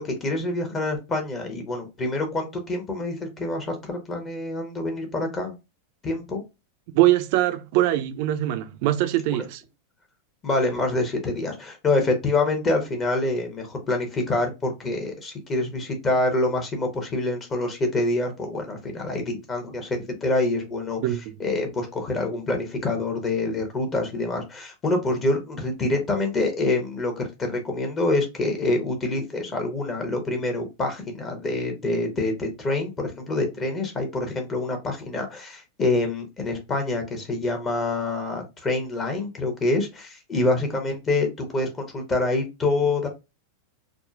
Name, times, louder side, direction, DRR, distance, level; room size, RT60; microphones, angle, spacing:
voice 1, 0.0-5.5 6.0-6.4 10.4-21.0 21.4-43.1, left 2 dB, 25° left, 0.9 m, -26 dB
voice 2, 6.9-9.6 21.0-21.2, right 14 dB, 45° right, 0.4 m, -22 dB
3.6 x 2.2 x 2.4 m
figure-of-eight pair, 90°, 0 cm